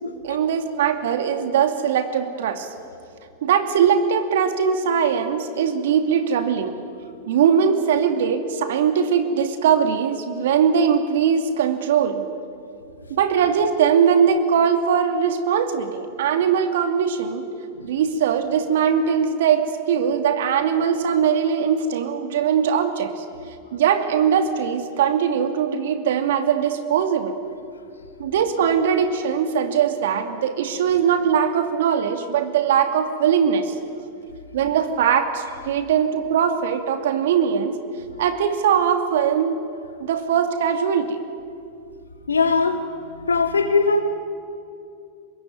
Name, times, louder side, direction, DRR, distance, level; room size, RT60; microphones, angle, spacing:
voice 1, 0.2-2.7 3.4-6.7 7.3-12.2 13.1-17.5 17.8-23.2 23.7-27.3 28.2-33.8 34.5-37.8 38.2-39.6 40.0-41.2, right 7 dB, 65° right, 7 dB, 2.6 m, -21 dB
voice 2, 42.3-42.8 43.1-44.0, left 4 dB, 85° left, 5 dB, 2.8 m, -20 dB
25.0 x 21.0 x 9.5 m, 2.4 s
figure-of-eight pair, 95°, 0 cm